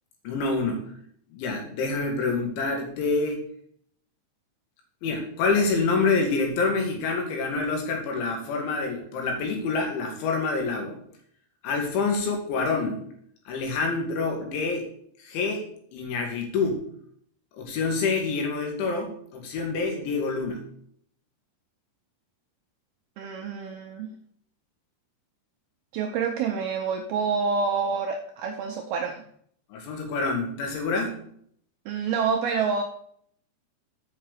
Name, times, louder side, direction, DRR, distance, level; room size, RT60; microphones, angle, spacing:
voice 1, 0.2-0.8 1.3-3.4 5.0-11.0 11.6-13.0 13.5-14.8 15.2-15.6 15.9-16.8 17.6-20.6 29.7-31.2, left 4 dB, 80° left, 1 dB, 4.3 m, -27 dB
voice 2, 23.2-24.1 25.9-29.2 31.9-32.8, right 5 dB, 80° right, 3 dB, 2.3 m, -27 dB
7.8 x 5.8 x 6.6 m, 0.64 s
omnidirectional pair, 5.4 m